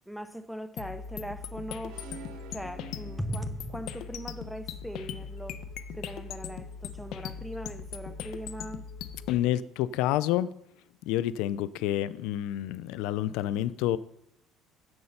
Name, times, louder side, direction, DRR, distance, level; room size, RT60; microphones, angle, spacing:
voice 1, 0.1-2.1 2.5-5.6 5.9-8.9, equal, ahead, 0.8 m, -39 dB
sound 1, 0.8-9.4, left 7 dB, 65° left, 0.7 m, -40 dB
sound 2, 1.9-3.9, right 3 dB, 80° right, 1.4 m, -48 dB
voice 2, 9.3-10.5 11.0-14.0, left 13 dB, 85° left, 0.4 m, -28 dB
9.6 x 7.6 x 5.7 m
cardioid pair, 115°, 0 cm